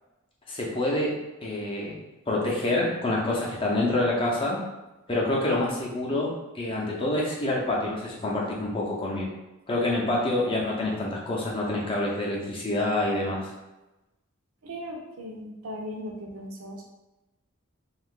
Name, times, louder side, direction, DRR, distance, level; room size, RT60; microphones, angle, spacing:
voice 1, 0.5-1.1 1.4-4.6 5.1-9.3 9.7-13.5, left 1 dB, 25° left, -3 dB, 0.6 m, -27 dB
voice 2, 14.6-16.8, equal, 75° right, 0 dB, 0.6 m, -38 dB
2.7 x 2.4 x 3.6 m, 1.0 s
head